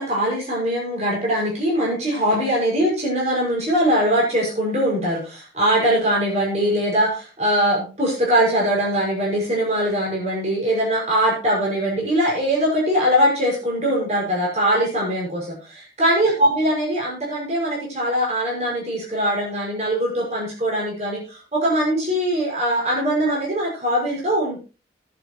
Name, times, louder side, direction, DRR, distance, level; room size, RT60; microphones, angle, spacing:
voice 1, 0.0-24.6, equal, 35° right, -3 dB, 5.9 m, -21 dB
19.5 x 7.9 x 3.1 m, 0.34 s
head